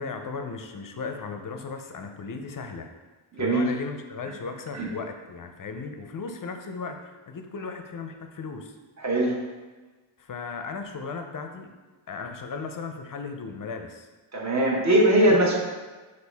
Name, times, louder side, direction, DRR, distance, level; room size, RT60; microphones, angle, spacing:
voice 1, 0.0-2.9 3.4-8.7 10.2-11.7 12.1-14.1 15.3-15.6, left 4 dB, 45° left, 6 dB, 0.5 m, -36 dB
voice 2, 3.3-3.7 4.7-4.9 9.0-9.4 14.3-15.6, right 1 dB, 35° right, -1 dB, 1.0 m, -21 dB
6.0 x 2.5 x 3.4 m, 1.3 s
wide cardioid pair, 85°, 48 cm